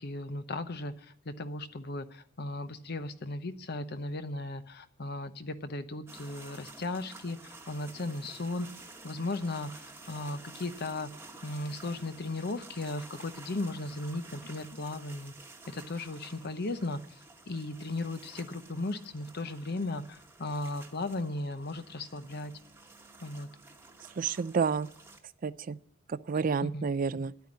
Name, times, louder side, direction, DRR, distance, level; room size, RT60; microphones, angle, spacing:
voice 1, 0.0-8.7 9.0-9.7 10.1-11.1 11.4-15.3 15.7-17.0 17.5-22.5 23.2-23.5 26.6-26.8, left 2 dB, 55° left, 11 dB, 0.8 m, -36 dB
sound 1, 6.1-25.2, right 3 dB, 15° right, 1.2 m, -51 dB
voice 2, 24.2-24.9 25.4-25.8 26.1-27.3, right 5 dB, 45° right, 16 dB, 0.4 m, -30 dB
10.5 x 9.2 x 8.4 m, 0.67 s
head